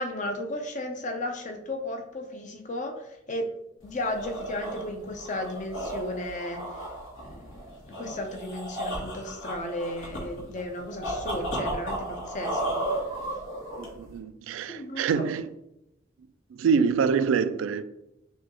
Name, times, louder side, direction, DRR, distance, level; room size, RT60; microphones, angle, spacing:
voice 1, 0.0-3.5 3.8-6.6 7.2-7.6 7.9-12.8 14.7-15.3, left 1 dB, 40° left, 0.6 m, -34 dB
sound 1, 3.8-14.2, right 1 dB, 75° left, 1.3 m, -34 dB
voice 2, 13.8-15.5 16.5-17.8, right 6 dB, 85° right, 0.3 m, -25 dB
6.0 x 2.3 x 2.9 m
head